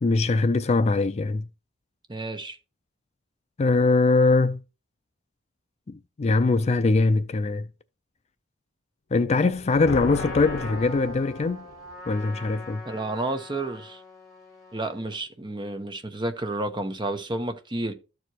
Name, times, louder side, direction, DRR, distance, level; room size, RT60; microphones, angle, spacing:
voice 1, 0.0-1.5 3.6-4.6 5.9-7.7 9.1-11.6 12.1-12.8, left 3 dB, 35° left, 0.4 m, -22 dB
voice 2, 2.1-2.6 12.9-14.0 14.7-17.9, right 2 dB, 25° right, 0.9 m, -31 dB
sound 1, 9.4-12.0, left 3 dB, 80° left, 0.7 m, -35 dB
Trumpet, 10.0-15.2, left 2 dB, ahead, 4.3 m, -42 dB
13.5 x 4.7 x 2.8 m
head